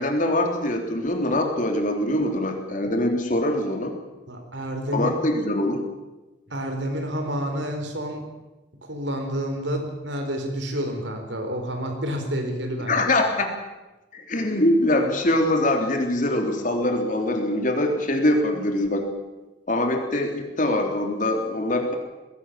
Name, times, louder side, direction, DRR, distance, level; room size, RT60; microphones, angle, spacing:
voice 1, 0.0-3.9 4.9-5.8 12.9-13.5 14.1-19.1 19.7-22.0, left 1 dB, 45° left, 4 dB, 3.4 m, -23 dB
voice 2, 4.3-5.2 6.5-8.2 8.9-13.0, equal, 70° right, 5 dB, 4.3 m, -29 dB
20.0 x 17.5 x 8.8 m, 1.1 s
head